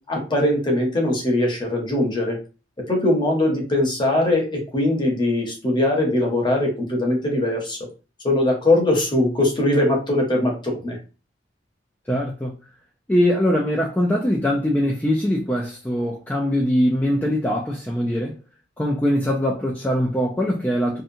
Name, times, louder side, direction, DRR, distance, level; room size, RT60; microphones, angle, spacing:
voice 1, 0.1-2.4 2.9-7.8 8.2-11.0, left 1 dB, 25° left, 0.8 m, -21 dB
voice 2, 12.1-12.5 13.1-18.4 18.8-21.0, equal, 10° left, 0.3 m, -22 dB
2.7 x 2.2 x 2.6 m
head